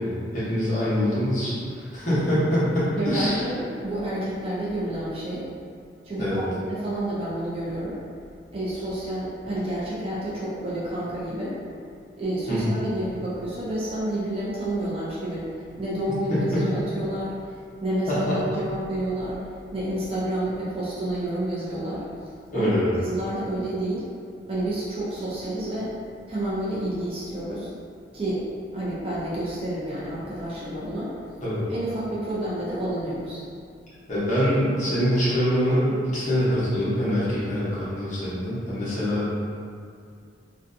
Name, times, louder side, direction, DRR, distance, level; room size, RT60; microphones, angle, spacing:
voice 1, 0.0-3.4 6.2-6.4 12.5-12.8 16.3-16.7 18.1-18.4 22.5-23.0 31.4-31.6 34.1-39.2, equal, 45° left, -10 dB, 0.9 m, -24 dB
voice 2, 3.0-5.5 6.0-8.0 8.5-11.6 12.2-15.5 15.8-17.4 17.8-19.4 19.7-22.1 22.5-22.7 23.0-24.1 24.5-25.9 26.3-27.7 28.1-28.4 28.7-31.1 31.7-33.4, right 1 dB, 30° right, -9 dB, 0.4 m, -29 dB
2.5 x 2.2 x 2.5 m, 2.3 s
head